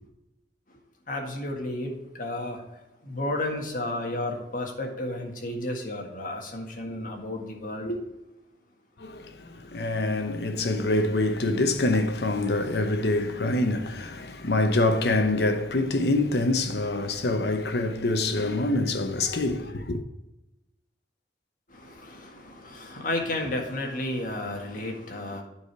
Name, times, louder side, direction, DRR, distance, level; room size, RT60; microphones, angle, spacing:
voice 1, 1.1-2.6 3.0-8.0 21.7-25.4, left 1 dB, 50° left, 1.7 m, -32 dB
voice 2, 9.0-20.0, left 2 dB, 65° left, 0.9 m, -25 dB
9.1 x 5.0 x 4.6 m
head